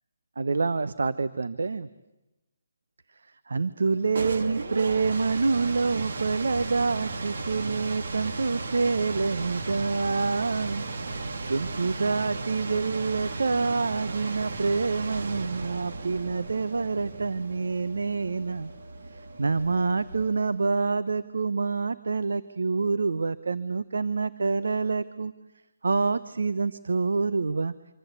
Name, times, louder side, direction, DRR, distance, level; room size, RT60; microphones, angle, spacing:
voice 1, 0.4-1.9 3.5-10.8 11.1-18.7 19.1-25.3 25.8-27.7, right 4 dB, 80° right, 14 dB, 1.0 m, -27 dB
sound 1, 3.9-20.6, right 3 dB, 55° right, 2.3 m, -35 dB
26.0 x 25.5 x 8.3 m, 0.98 s
hypercardioid pair, 175°, 0 cm